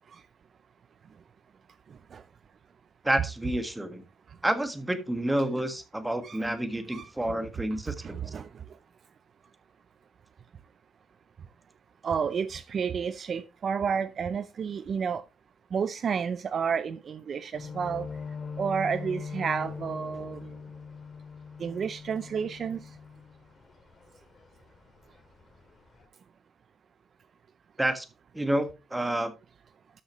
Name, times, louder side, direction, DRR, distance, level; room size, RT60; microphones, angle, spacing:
voice 1, 3.0-4.0 4.4-8.2 27.8-28.0 28.3-29.3, right 1 dB, 10° right, 1.7 m, -29 dB
voice 2, 7.9-8.5 12.0-15.2 15.7-18.1 18.6-20.5 21.6-22.8, right 6 dB, 50° right, 0.5 m, -31 dB
sound 1, 17.5-24.0 24.4-24.6 25.1-25.6 25.9-26.0, left 5 dB, 40° left, 2.2 m, -41 dB
12.5 x 6.4 x 3.1 m
cardioid pair, 85°, 0 cm